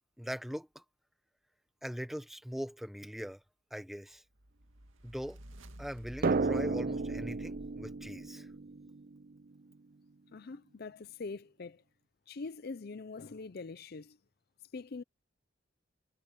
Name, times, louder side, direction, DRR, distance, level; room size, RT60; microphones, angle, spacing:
voice 1, 0.2-0.8 1.8-3.4 3.7-4.2 5.0-5.4 5.8-8.5, equal, ahead, 1.1 m, -41 dB
sound 1, 4.4-8.6, right 1 dB, 80° right, 2.2 m, -51 dB
Drum, 6.2-9.6, right 3 dB, 45° right, 0.4 m, -33 dB
voice 2, 10.3-11.8 12.3-14.2 14.7-15.0, left 4 dB, 50° left, 0.5 m, -43 dB
head